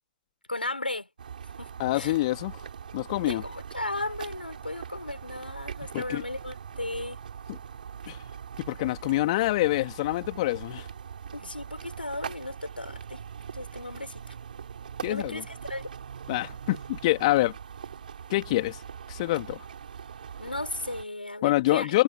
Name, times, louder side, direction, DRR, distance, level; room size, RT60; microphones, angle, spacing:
voice 1, 0.5-1.1 1.6-2.1 3.3-7.2 11.3-13.2 13.5-14.3 15.1-15.9 20.4-21.9, left 2 dB, 85° left, 5.1 m, -35 dB
sound 1, 1.2-21.0, right 7 dB, 65° right, 6.1 m, -42 dB
voice 2, 1.8-2.6 2.9-3.4 5.9-6.2 7.5-7.6 8.1-8.2 8.6-10.9 15.0-15.4 16.3-17.5 18.3-18.8 19.1-19.6 21.4-22.0, left 18 dB, 45° left, 3.5 m, -26 dB
figure-of-eight pair, 115°, 5 cm